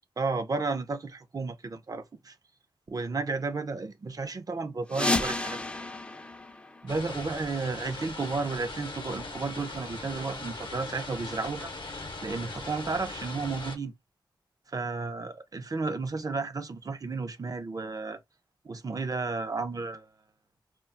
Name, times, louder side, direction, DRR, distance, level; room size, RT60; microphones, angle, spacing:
voice 1, 0.2-2.3 2.9-5.7 6.8-11.7 12.2-13.9 14.7-18.2 18.6-20.1, right 3 dB, 40° right, 0.6 m, -33 dB
sound 1, 4.9-7.5, left 2 dB, 15° left, 0.4 m, -32 dB
sound 2, 6.9-13.8, left 2 dB, 60° left, 0.7 m, -40 dB
2.2 x 2.0 x 3.8 m
cardioid pair, 45°, 9 cm